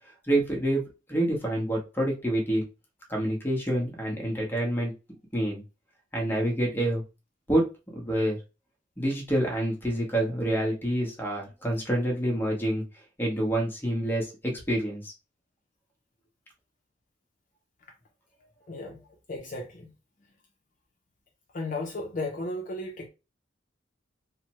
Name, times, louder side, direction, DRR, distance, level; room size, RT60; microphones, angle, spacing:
voice 1, 0.3-0.8 1.1-2.6 3.1-4.9 5.3-5.6 6.1-7.0 7.5-7.6 7.9-8.4 9.0-12.8 13.2-15.1, right 1 dB, 10° left, 1.0 m, -27 dB
voice 2, 18.7-19.0 19.3-19.9 21.5-23.1, left 2 dB, 45° left, 0.6 m, -34 dB
3.2 x 2.1 x 2.9 m
head